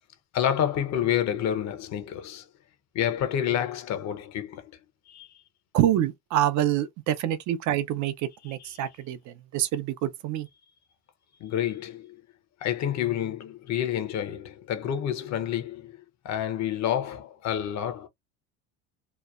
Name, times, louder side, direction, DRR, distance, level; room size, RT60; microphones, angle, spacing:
voice 1, 0.3-2.5 2.9-4.7 5.1-5.4 8.5-8.8 11.4-12.2 12.6-16.0 16.2-18.1, left 10 dB, 55° left, 0.8 m, -29 dB
voice 2, 5.7-10.5, right 12 dB, 60° right, 0.6 m, -26 dB
3.0 x 2.1 x 2.4 m
cardioid pair, 110°, 33 cm